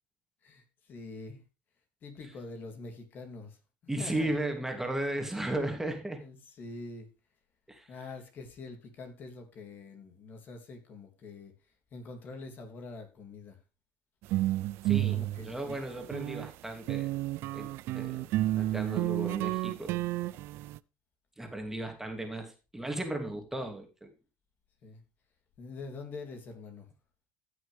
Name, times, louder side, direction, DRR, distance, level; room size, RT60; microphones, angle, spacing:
voice 1, 0.4-1.4 2.0-3.6 4.0-4.3 6.2-7.1 7.9-11.5 11.9-13.6 15.1-15.8 24.8-25.0 25.6-26.9, left 3 dB, 45° left, 3.1 m, -45 dB
voice 2, 3.9-6.2 7.7-7.9 14.8-17.2 17.5-18.3 18.5-20.0 21.4-24.1, right 1 dB, 10° right, 2.9 m, -35 dB
sound 1, 14.2-16.5 16.9-20.8, right 16 dB, 65° right, 0.5 m, -31 dB
15.5 x 6.3 x 3.5 m
supercardioid pair, 95°, 4 cm